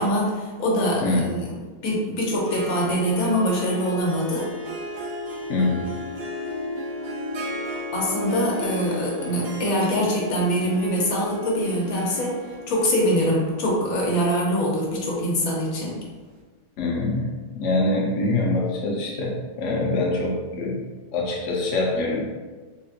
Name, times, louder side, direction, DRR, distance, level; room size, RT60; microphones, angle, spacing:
voice 1, 0.0-4.5 7.9-12.4 12.7-16.0, equal, 80° left, -3 dB, 1.2 m, -24 dB
Harp, 2.5-16.0, left 1 dB, 65° right, 0.6 m, -35 dB
voice 2, 5.5-5.9 16.8-20.8 21.1-22.2, left 2 dB, 65° left, -3 dB, 0.9 m, -24 dB
3.6 x 2.4 x 2.7 m, 1.3 s
omnidirectional pair, 1.5 m